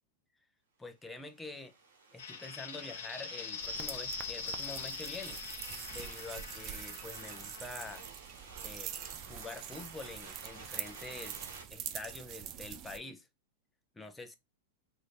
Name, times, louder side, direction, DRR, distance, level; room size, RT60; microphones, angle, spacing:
voice 1, 0.8-1.7 2.1-5.4 5.9-8.0 8.6-8.9 9.2-13.3 13.9-14.4, left 3 dB, 10° left, 0.6 m, -46 dB
sound 1, 1.2-11.6, right 4 dB, 90° right, 1.2 m, -53 dB
sound 2, 2.2-8.0, left 5 dB, 75° left, 0.8 m, -43 dB
sound 3, 3.6-13.0, right 10 dB, 40° right, 0.4 m, -45 dB
2.7 x 2.6 x 3.4 m
hypercardioid pair, 110°, 0 cm